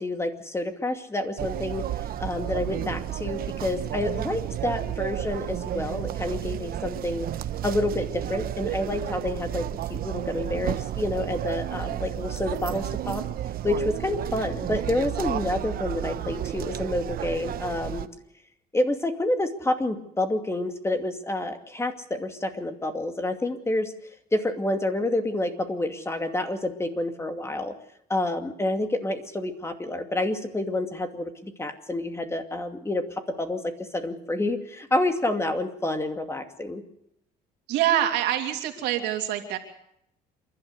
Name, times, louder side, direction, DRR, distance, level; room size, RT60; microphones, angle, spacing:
voice 1, 0.0-1.8 2.2-7.3 7.6-13.2 13.6-18.1 18.7-23.9 24.3-27.7 28.1-33.0 33.4-36.8, left 1 dB, 15° left, 7 dB, 2.4 m, -28 dB
sound 1, 1.4-18.1, right 11 dB, 60° right, 1.1 m, -32 dB
voice 2, 37.7-39.6, right 12 dB, 90° right, 4 dB, 3.0 m, -25 dB
28.0 x 12.0 x 8.2 m, 0.76 s
cardioid pair, 110°, 17 cm